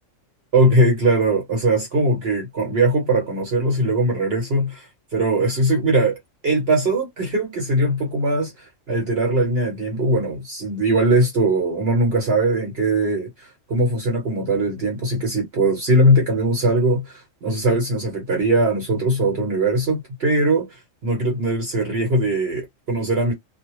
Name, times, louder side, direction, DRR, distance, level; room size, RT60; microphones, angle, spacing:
voice 1, 0.5-23.3, right 1 dB, 50° right, 1.1 m, -20 dB
2.6 x 2.1 x 3.0 m
omnidirectional pair, 1.4 m